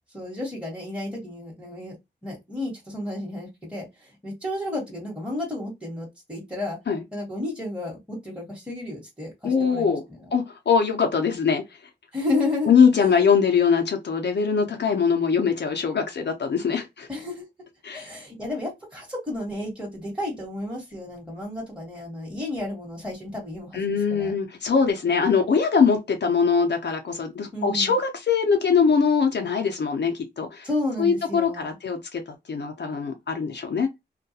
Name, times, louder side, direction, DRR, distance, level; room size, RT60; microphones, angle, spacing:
voice 1, 0.1-1.9 2.2-6.8 7.1-10.2 12.1-13.1 17.1-17.5 17.9-24.3 25.0-25.5 27.5-27.9 30.6-31.7, left 2 dB, 5° right, 1.1 m, -32 dB
voice 2, 9.4-10.0 10.3-11.6 12.7-17.1 17.8-18.1 23.7-30.7 31.0-32.2 32.5-33.9, left 6 dB, 70° left, 0.6 m, -22 dB
2.3 x 2.2 x 2.7 m
wide cardioid pair, 70°, 19 cm